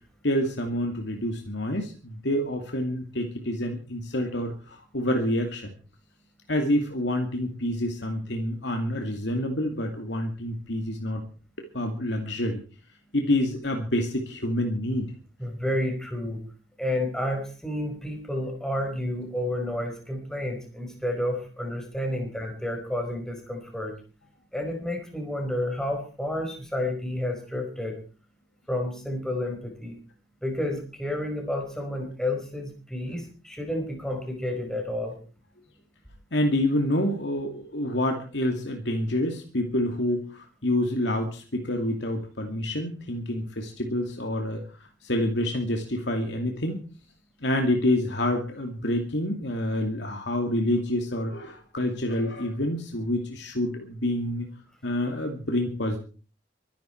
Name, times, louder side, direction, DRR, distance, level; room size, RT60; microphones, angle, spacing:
voice 1, 0.2-5.7 6.5-11.2 11.6-12.6 13.1-15.1 36.3-46.8 47.4-54.5 54.8-56.0, left 1 dB, 70° left, 3 dB, 2.5 m, -27 dB
voice 2, 15.4-16.4 16.8-23.9 24.5-28.0 28.7-30.0 30.4-35.2, left 1 dB, 5° left, 2 dB, 4.9 m, -30 dB
24.0 x 11.5 x 4.5 m, 0.39 s
head